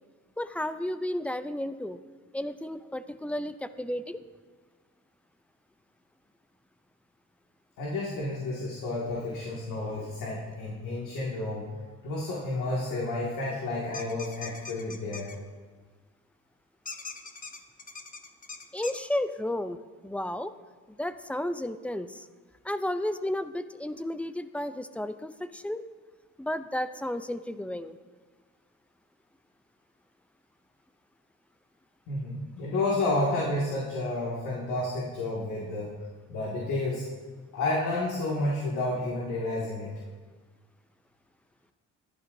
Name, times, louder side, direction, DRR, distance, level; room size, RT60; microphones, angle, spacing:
voice 1, 0.4-2.0 2.3-4.2 18.7-19.8 20.0-20.5 21.0-22.2 22.6-25.8 26.4-28.0, left 1 dB, 5° left, 12 dB, 0.5 m, -32 dB
voice 2, 7.8-11.6 12.0-15.3 32.1-35.9 36.3-37.0 37.5-39.9, left 2 dB, 80° left, -5 dB, 2.2 m, -30 dB
sound 1, 13.9-15.4 16.9-19.0, left 4 dB, 25° left, 0.9 m, -41 dB
14.5 x 11.5 x 2.7 m, 1.4 s
cardioid pair, 90°, 30 cm